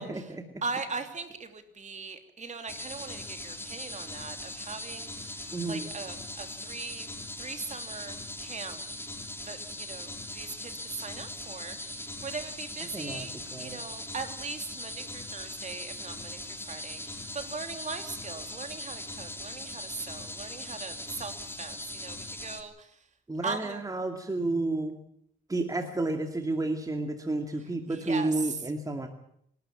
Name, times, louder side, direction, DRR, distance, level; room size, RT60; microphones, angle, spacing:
voice 1, 0.0-0.4 5.5-5.9 12.9-13.3 13.5-13.8 23.3-25.0 25.5-29.1, right 2 dB, 15° right, 5 dB, 2.3 m, -31 dB
voice 2, 0.6-7.1 7.4-8.8 9.4-13.3 13.6-23.0 23.4-23.8 27.9-28.6, right 4 dB, 35° right, 7 dB, 3.1 m, -40 dB
sound 1, 2.7-22.6, left 1 dB, 10° left, 2.8 m, -40 dB
26.5 x 12.5 x 8.9 m, 0.70 s
cardioid pair, 90°, 20 cm